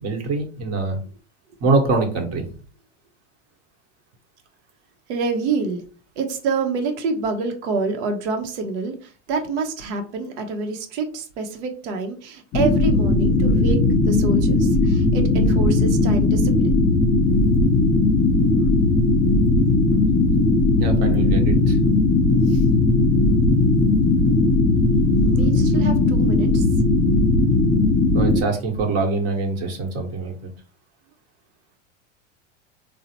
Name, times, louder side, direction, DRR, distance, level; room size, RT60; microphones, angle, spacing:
voice 1, 0.0-1.0 1.6-2.5 20.8-21.8 22.5-22.6 28.1-30.4, right 3 dB, 45° right, 3 dB, 1.2 m, -24 dB
voice 2, 5.1-5.8 6.2-13.8 14.0-16.8 25.2-26.7, right 4 dB, 65° right, 5 dB, 0.8 m, -27 dB
sound 1, 12.5-28.4, left 2 dB, 35° left, 0.8 m, -18 dB
3.8 x 2.1 x 2.8 m, 0.38 s
hypercardioid pair, 95°, 37 cm